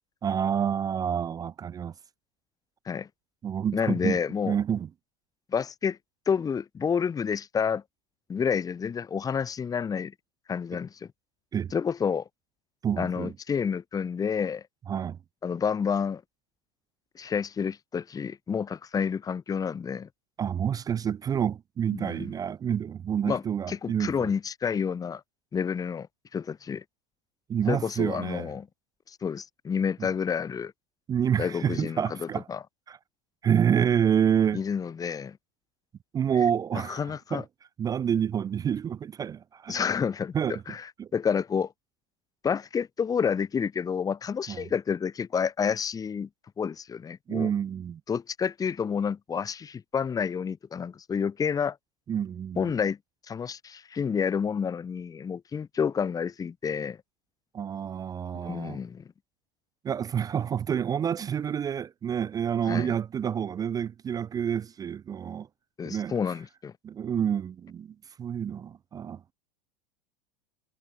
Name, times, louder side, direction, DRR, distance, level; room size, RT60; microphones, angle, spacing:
voice 1, 0.2-1.9 3.4-4.2 4.4-4.9 10.7-10.8 11.5-11.7 12.8-13.3 14.9-15.2 20.4-24.3 27.5-28.5 31.1-32.5 32.9-33.0 33.4-34.6 36.1-37.4 37.8-39.8 40.3-40.6 41.0-41.1 44.5-44.7 47.3-48.0 52.1-52.7 57.5-58.8 59.8-65.5 65.8-66.1 66.8-69.3, right 8 dB, 15° right, 0.4 m, -28 dB
voice 2, 3.7-4.6 5.5-6.0 6.3-7.8 8.3-10.1 10.5-11.1 11.7-12.2 13.0-14.6 15.4-16.2 17.1-20.1 21.9-22.3 23.3-23.4 23.7-25.2 25.5-26.1 26.3-26.8 27.7-28.7 29.1-30.7 31.4-32.6 34.5-35.4 36.9-37.4 39.7-40.9 41.1-41.7 42.4-46.3 46.6-47.5 48.1-51.8 52.6-53.0 53.3-57.0 58.3-59.0 62.7-62.9 65.8-66.7, left 6 dB, 15° left, 1.0 m, -29 dB
figure-of-eight pair, 85°, 21 cm